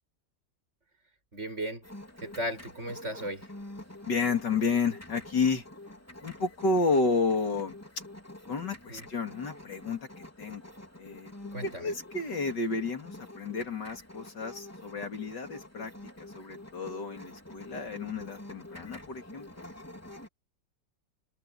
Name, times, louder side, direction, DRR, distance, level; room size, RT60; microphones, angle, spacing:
voice 1, 1.3-1.9 2.2-3.5 8.9-9.1 11.5-11.9, right 1 dB, 40° right, 7.1 m, -36 dB
sound 1, 1.8-20.3, left 1 dB, 10° left, 3.4 m, -47 dB
voice 2, 4.1-5.7 6.2-7.8 8.5-10.7 11.0-11.3 11.6-15.9 16.2-19.5, left 4 dB, 70° left, 3.5 m, -31 dB
omnidirectional pair, 1.9 m